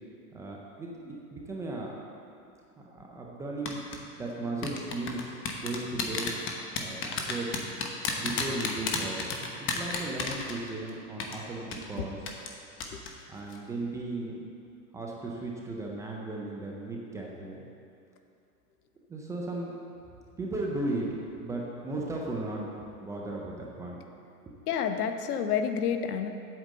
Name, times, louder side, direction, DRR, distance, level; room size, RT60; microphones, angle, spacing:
voice 1, 0.3-2.1 2.9-3.8 4.2-6.3 6.8-7.7 8.2-9.3 9.6-12.2 13.3-14.4 14.9-17.7 19.1-19.7 20.4-24.0 24.4-24.5, right 2 dB, 5° right, -2 dB, 0.3 m, -36 dB
sound 1, 3.7-4.0 4.6-10.9 11.2-11.3 11.7-11.8 12.3-12.5 12.8-13.1 13.4-13.6, left 5 dB, 25° left, 1.0 m, -31 dB
voice 2, 24.7-26.3, left 7 dB, 70° left, 7 dB, 0.9 m, -29 dB
8.2 x 5.1 x 7.6 m, 2.6 s
hypercardioid pair, 115°, 47 cm